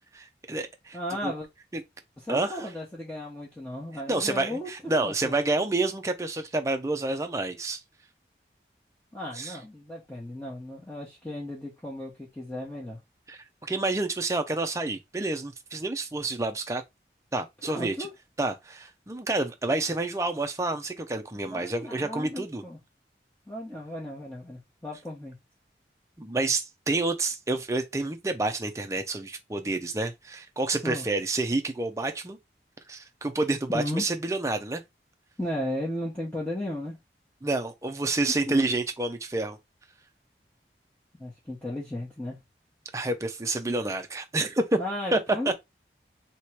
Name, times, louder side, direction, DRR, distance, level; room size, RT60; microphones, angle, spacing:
voice 1, 0.1-1.3 1.7-1.8 2.3-2.7 4.1-7.8 9.3-9.6 13.3-16.8 17.3-17.9 18.4-22.6 26.2-32.4 32.9-34.8 37.4-39.6 42.9-44.8 45.1-45.2 45.5-45.6, right 2 dB, 15° right, 0.5 m, -29 dB
voice 2, 0.9-1.5 2.3-4.7 5.0-5.4 9.1-13.0 17.6-18.1 21.5-22.8 23.5-25.3 30.8-31.0 33.7-34.0 35.4-37.0 41.2-42.4 44.8-45.5, left 1 dB, 10° left, 0.9 m, -35 dB
3.0 x 2.9 x 4.5 m
head